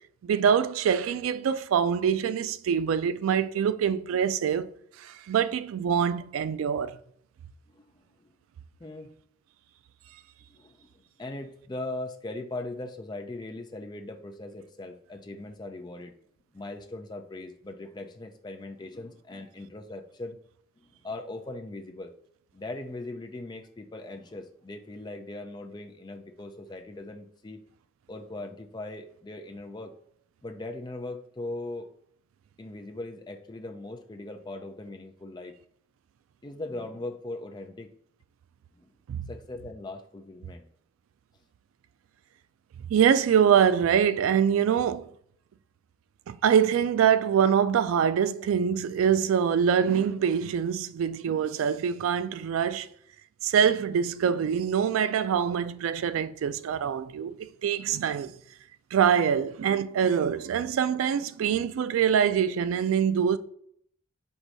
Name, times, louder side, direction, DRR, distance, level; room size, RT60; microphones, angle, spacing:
voice 1, 0.2-4.7 5.0-7.0 39.1-39.2 42.9-45.1 46.3-52.9 53.4-58.3 58.9-63.4, right 8 dB, 90° right, 0.3 m, -24 dB
voice 2, 8.8-9.1 10.5-10.9 11.2-16.1 16.5-20.4 20.8-22.1 22.5-27.6 28.1-29.9 30.4-31.9 32.6-35.5 36.4-37.9 38.7-38.9 39.3-40.7, left 2 dB, 20° left, 0.4 m, -39 dB
4.6 x 2.6 x 3.9 m
head